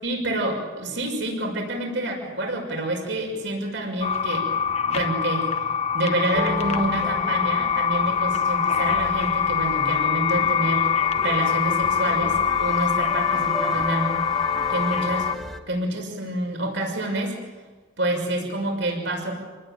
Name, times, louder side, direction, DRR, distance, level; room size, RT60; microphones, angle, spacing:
voice 1, 0.0-4.5 4.9-5.5 5.9-10.9 11.2-14.2 14.7-15.3 15.7-17.4 18.0-19.3, right 1 dB, 70° right, 2 dB, 6.1 m, -28 dB
sound 1, 4.0-15.4, left 7 dB, 35° left, 1.1 m, -24 dB
sound 2, 6.3-15.6, left 1 dB, ahead, 1.2 m, -36 dB
28.0 x 20.0 x 9.0 m, 1.4 s
head